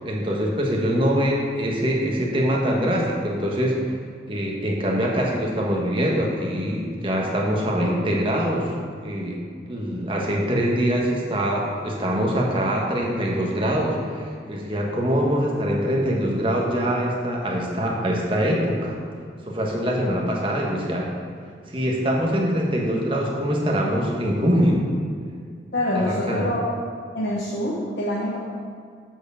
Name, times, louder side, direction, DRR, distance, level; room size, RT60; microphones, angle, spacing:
voice 1, 0.0-3.8 4.3-8.7 9.0-9.4 9.7-19.0 19.4-21.1 21.7-24.9 25.9-26.5, equal, 30° right, -2 dB, 1.2 m, -23 dB
voice 2, 25.7-26.6 27.1-28.4, left 1 dB, 65° left, -6 dB, 1.1 m, -25 dB
7.9 x 4.5 x 7.0 m, 2.1 s
head